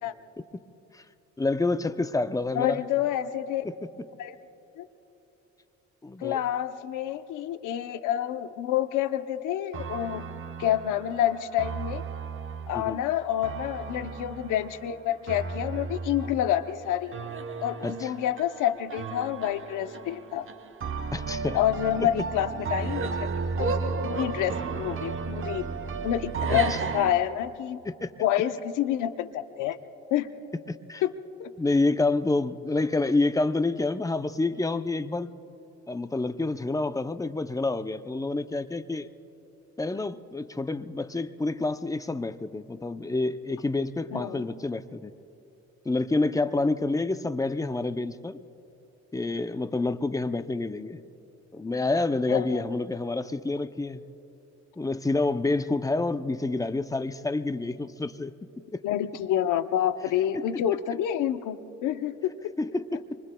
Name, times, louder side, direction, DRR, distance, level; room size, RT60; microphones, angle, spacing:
voice 1, 1.4-2.8 3.6-3.7 6.0-6.4 12.7-13.0 17.8-18.1 21.1-21.6 22.0-22.1 26.5-26.8 27.9-28.1 30.7-31.0 31.6-35.3 35.9-39.1 39.8-45.1 45.9-48.4 49.1-51.0 51.5-54.0 54.8-58.3 58.7-58.8 60.3-60.4 62.6-63.2, left 2 dB, 10° left, 11 dB, 0.5 m, -28 dB
voice 2, 2.5-3.7 4.2-4.4 4.8-4.9 6.2-10.2 10.6-12.0 12.7-17.1 17.6-20.5 21.5-23.3 23.6-25.6 26.0-27.8 28.2-29.8 30.1-30.3 31.0-31.1 31.4-31.5 44.1-44.4 52.3-52.6 58.8-62.5, left 11 dB, 90° left, 10 dB, 0.7 m, -28 dB
sound 1, 9.7-27.1, right 4 dB, 45° right, 1.0 m, -34 dB
26.0 x 24.0 x 2.3 m, 2.9 s
cardioid pair, 90°, 30 cm